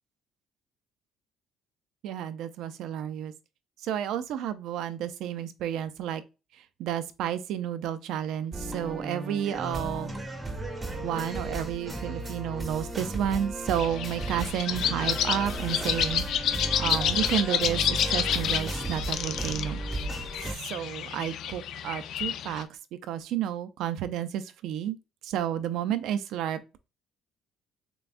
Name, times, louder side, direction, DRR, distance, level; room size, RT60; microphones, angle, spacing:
voice 1, 2.0-3.3 3.8-6.2 6.5-10.1 11.0-16.2 16.7-19.8 20.4-22.7 23.1-25.0 25.2-26.8, right 10 dB, 70° right, 0.5 m, -31 dB
sound 1, 8.5-20.5, right 2 dB, 15° right, 0.8 m, -35 dB
sound 2, 13.7-22.6, left 9 dB, 60° left, 0.4 m, -30 dB
6.8 x 2.3 x 2.5 m
cardioid pair, 155°, 0 cm